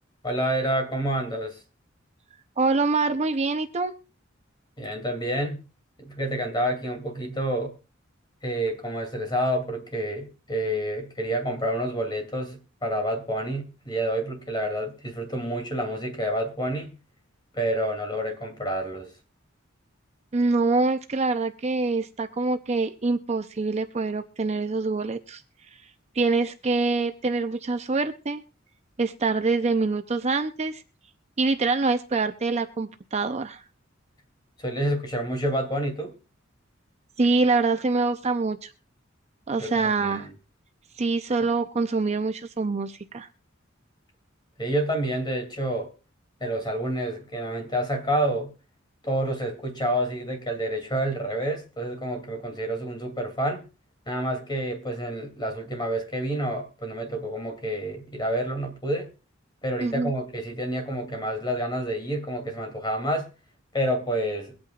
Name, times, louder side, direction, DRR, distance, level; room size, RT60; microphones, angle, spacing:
voice 1, 0.2-1.6 4.8-5.6 6.0-7.8 8.4-17.0 17.5-19.1 34.6-36.1 39.6-40.3 44.6-45.9 46.4-48.5 49.0-53.7 54.1-59.1 59.6-63.3 63.7-64.5, right 1 dB, 20° left, 2.6 m, -28 dB
voice 2, 2.6-3.9 20.3-25.4 26.2-28.4 29.0-30.8 31.4-33.6 37.2-38.7 39.5-40.3 41.0-43.3 59.8-60.1, right 3 dB, 35° right, 0.6 m, -25 dB
23.0 x 8.7 x 2.3 m
head